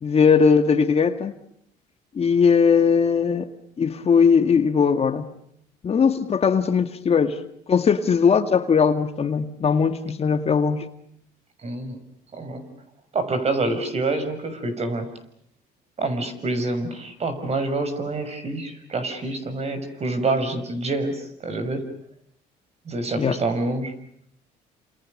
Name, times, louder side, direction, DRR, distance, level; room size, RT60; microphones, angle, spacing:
voice 1, 0.0-1.3 2.1-3.5 3.8-5.3 5.8-7.4 7.7-10.9 23.1-23.4, left 6 dB, 35° left, 2.0 m, -19 dB
voice 2, 11.6-12.0 12.3-12.6 13.1-15.1 16.0-21.8 22.8-23.9, right 2 dB, 40° right, 6.4 m, -27 dB
29.5 x 28.0 x 6.6 m
cardioid pair, 110°, 17 cm